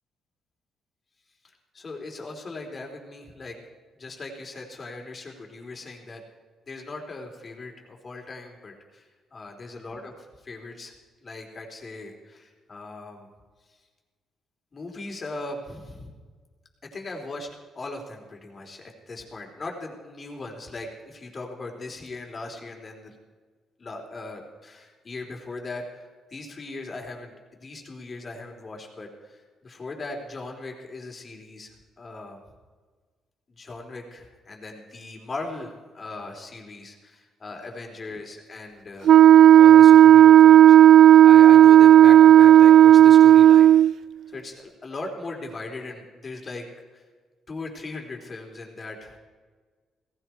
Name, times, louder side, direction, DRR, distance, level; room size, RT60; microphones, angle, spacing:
voice 1, 1.4-3.6 4.0-6.2 6.7-10.1 10.4-10.9 11.2-13.3 14.7-16.1 16.9-17.5 17.7-23.2 23.8-32.4 33.5-39.1 39.5-40.8 41.2-43.7 44.3-46.6 46.9-47.0 47.5-49.2, left 2 dB, 35° left, 1 dB, 3.7 m, -39 dB
Wind instrument woodwind instrument, 39.1-43.9, right 11 dB, 65° right, 0.4 m, -11 dB
18.0 x 16.0 x 4.6 m, 1.5 s
cardioid pair, 90°, 0 cm